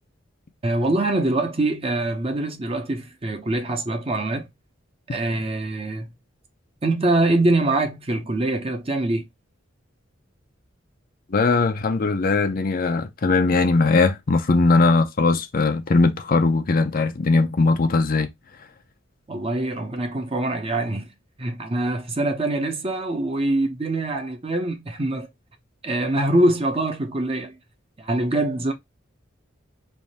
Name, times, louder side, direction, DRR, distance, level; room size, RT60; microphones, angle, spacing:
voice 1, 0.6-4.5 5.1-6.1 6.8-9.3 19.3-21.1 21.4-25.3 25.8-27.6 28.0-28.7, right 2 dB, 30° right, 0.8 m, -24 dB
voice 2, 11.3-18.3, left 3 dB, 50° left, 0.6 m, -20 dB
3.5 x 2.7 x 4.0 m
head